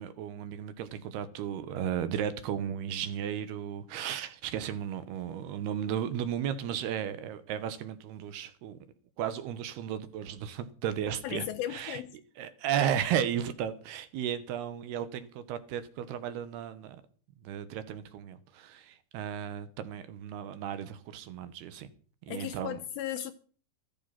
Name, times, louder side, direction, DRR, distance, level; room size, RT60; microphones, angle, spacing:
voice 1, 0.0-8.8 9.2-12.0 12.4-17.0 17.4-21.9 22.3-22.8, right 9 dB, 75° right, 3.0 m, -34 dB
voice 2, 11.2-12.2 22.3-23.3, left 11 dB, 75° left, 2.3 m, -36 dB
14.0 x 14.0 x 5.9 m
omnidirectional pair, 4.9 m